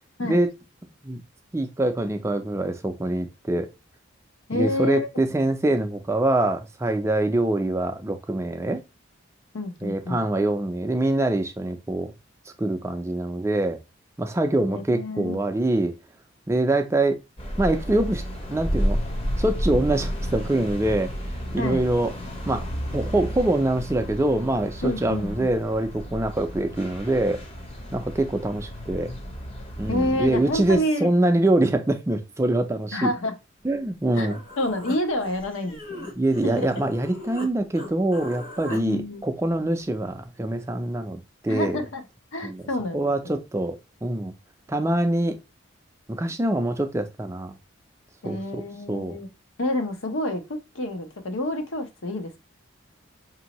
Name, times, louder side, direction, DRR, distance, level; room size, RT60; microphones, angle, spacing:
voice 1, 1.5-3.7 4.5-8.8 9.8-12.1 12.6-13.8 14.2-15.9 16.5-17.2 17.6-18.2 18.5-19.0 19.4-21.1 21.5-22.1 22.5-27.4 27.9-29.1 29.8-33.1 33.6-34.4 36.2-41.8 42.4-42.6 42.9-44.3 44.7-45.4 46.1-47.5 48.2-48.6 48.9-49.2, right 1 dB, 15° right, 0.3 m, -24 dB
voice 2, 4.5-5.1 9.5-10.3 14.7-15.4 21.6-21.8 24.8-25.5 29.9-31.1 32.9-33.4 34.2-36.1 36.4-36.7 38.7-39.2 41.5-42.0 42.3-43.4 48.2-49.3 49.6-52.4, left 1 dB, 75° left, 0.8 m, -28 dB
sound 1, 17.4-30.8, equal, 30° left, 0.7 m, -32 dB
Human voice, 33.8-33.9 34.1-37.5 37.7-38.8, left 2 dB, 45° left, 1.1 m, -39 dB
5.1 x 2.7 x 2.9 m
head